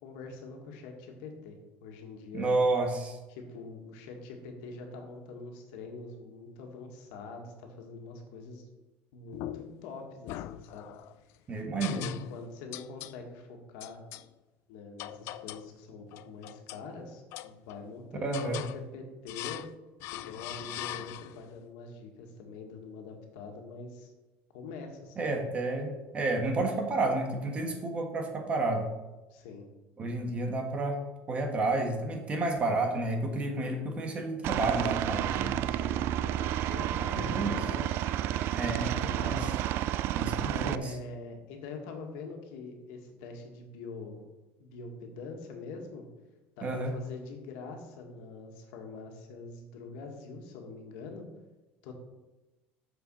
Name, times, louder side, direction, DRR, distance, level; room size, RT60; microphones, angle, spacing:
voice 1, 0.0-2.5 3.3-8.6 9.1-10.9 11.8-14.0 14.7-19.6 20.1-24.1 24.5-25.3 29.3-29.7 35.6-39.6 40.5-44.2 44.6-46.1 46.6-51.2 51.8-51.9, left 3 dB, 85° left, 2 dB, 1.9 m, -44 dB
voice 2, 2.3-3.2 11.5-12.1 18.2-18.6 25.2-28.9 30.0-31.0 31.3-35.6 37.1-37.5 38.5-39.5 40.1-40.9 46.6-46.9, right 2 dB, 25° right, 4 dB, 1.4 m, -30 dB
sound 1, 9.3-9.9 10.3-11.1 11.8-12.4 12.7-13.2 13.8-14.3 15.0-15.7 16.1-16.9 17.3-17.9 18.3-18.8 19.3-19.7 20.0-21.5, left 15 dB, 60° left, 0.4 m, -41 dB
Aircraft, 34.4-40.7, right 12 dB, 55° right, 0.4 m, -31 dB
7.0 x 6.9 x 6.3 m, 1.1 s
cardioid pair, 155°, 5 cm